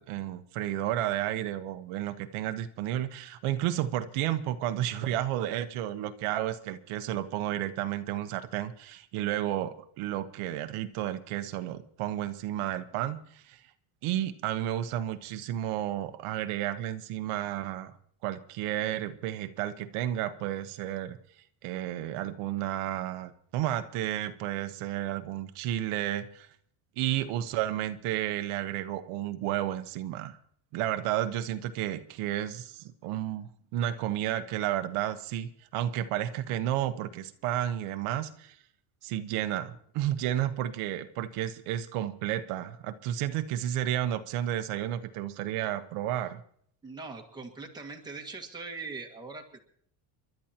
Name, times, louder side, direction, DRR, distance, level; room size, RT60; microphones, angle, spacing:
voice 1, 0.0-13.6 14.0-17.9 18.2-21.2 21.6-26.5 27.0-30.4 30.7-38.6 39.0-46.4, right 12 dB, 85° right, 9 dB, 1.1 m, -32 dB
voice 2, 46.8-49.6, right 4 dB, 10° right, 0 dB, 1.7 m, -41 dB
30.0 x 12.0 x 2.9 m, 0.62 s
cardioid pair, 175°, 50 cm